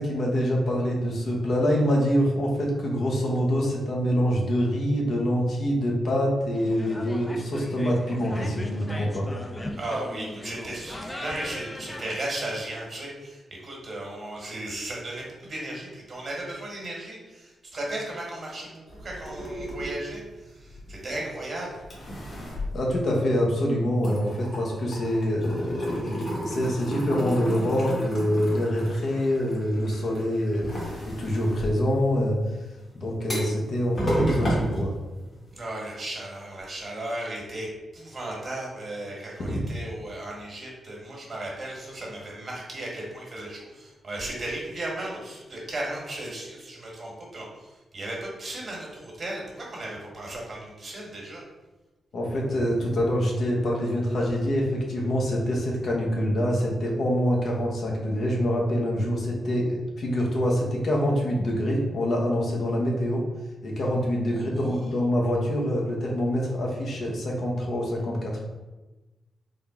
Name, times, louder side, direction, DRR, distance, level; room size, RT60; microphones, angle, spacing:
voice 1, 0.0-9.3 22.7-32.4 32.9-34.9 39.5-39.6 52.1-63.3 63.6-68.4, equal, 65° left, -2 dB, 0.9 m, -25 dB
sound 1, 6.5-12.2, left 1 dB, 15° left, 0.5 m, -38 dB
voice 2, 9.8-21.8 35.5-51.4 64.3-64.4, right 1 dB, 50° right, -2 dB, 1.4 m, -35 dB
sound 2, 18.9-21.4 21.8-23.6 23.9-35.6, equal, 50° left, 1.3 m, -33 dB
3.8 x 2.2 x 3.7 m, 1.1 s
supercardioid pair, 45°, 0 cm